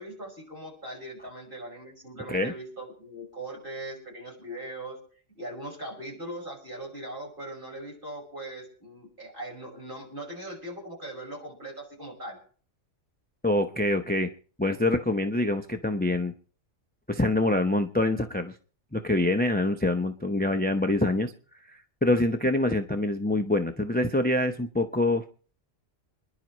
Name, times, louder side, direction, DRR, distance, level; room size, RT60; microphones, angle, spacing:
voice 1, 0.0-5.0 5.3-12.4, right 1 dB, 45° right, -2 dB, 6.1 m, -40 dB
voice 2, 13.4-14.3 14.6-16.3 17.1-18.5 18.9-21.3 21.7-25.2, left 1 dB, 10° left, 6 dB, 0.5 m, -25 dB
27.5 x 11.0 x 3.1 m, 0.42 s
omnidirectional pair, 1.2 m